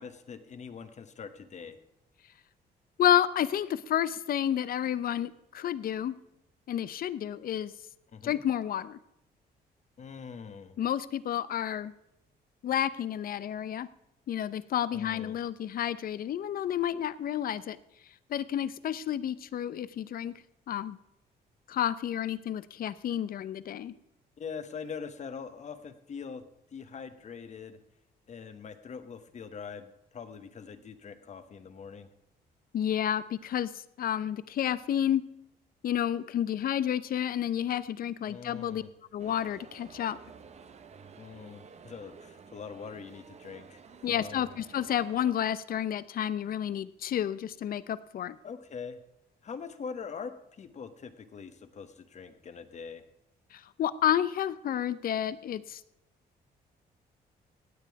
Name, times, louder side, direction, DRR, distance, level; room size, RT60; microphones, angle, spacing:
voice 1, 0.0-1.8 8.1-8.4 10.0-10.8 14.9-15.4 24.4-26.4 26.7-27.8 28.3-32.1 38.2-38.9 41.2-44.5 48.4-49.0 49.4-53.0, left 6 dB, 45° left, 10 dB, 1.1 m, -43 dB
voice 2, 3.0-6.2 6.7-7.7 8.2-9.0 10.8-11.9 12.6-13.9 14.3-17.8 18.3-20.3 20.7-21.0 21.7-23.9 32.7-33.7 34.0-35.2 35.8-38.8 39.1-40.2 44.0-48.4 53.5-55.8, left 10 dB, 60° left, 16 dB, 0.7 m, -30 dB
sound 1, 39.2-45.3, right 6 dB, 40° right, 0.9 m, -52 dB
16.5 x 9.1 x 4.7 m, 0.84 s
cardioid pair, 120°, 17 cm